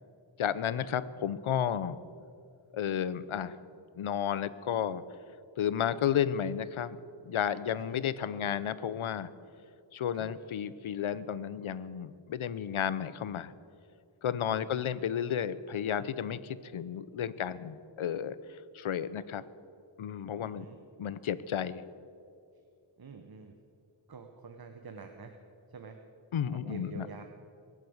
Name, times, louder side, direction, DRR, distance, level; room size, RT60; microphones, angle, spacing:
voice 1, 0.4-2.0 2.7-3.6 3.9-5.0 5.6-9.3 9.9-13.5 14.2-19.4 20.0-20.7 21.0-21.8 26.3-27.2, left 9 dB, 85° left, 16 dB, 0.7 m, -32 dB
voice 2, 7.8-8.1 10.1-10.3 14.5-14.8 20.4-20.8 22.5-22.6 23.0-23.5 24.1-25.4 25.7-26.0 26.5-27.2, right 5 dB, 50° right, 5 dB, 1.2 m, -47 dB
22.5 x 7.6 x 7.9 m, 2.5 s
wide cardioid pair, 75°, 47 cm